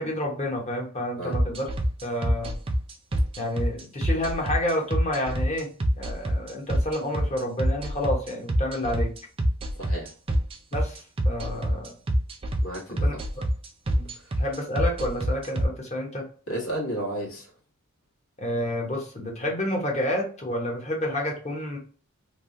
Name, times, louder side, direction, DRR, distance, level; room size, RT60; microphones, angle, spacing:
voice 1, 0.0-1.7 2.0-2.5 3.4-5.7 6.0-9.1 10.7-12.0 12.9-13.4 13.9-14.1 14.4-16.2 18.4-21.8, left 1 dB, 30° left, 1.0 m, -29 dB
sound 1, 1.3-15.6, equal, 25° right, 0.4 m, -25 dB
voice 2, 9.8-10.1 12.6-13.1 16.5-17.5, right 1 dB, 75° left, 1.6 m, -32 dB
3.3 x 2.3 x 2.7 m
head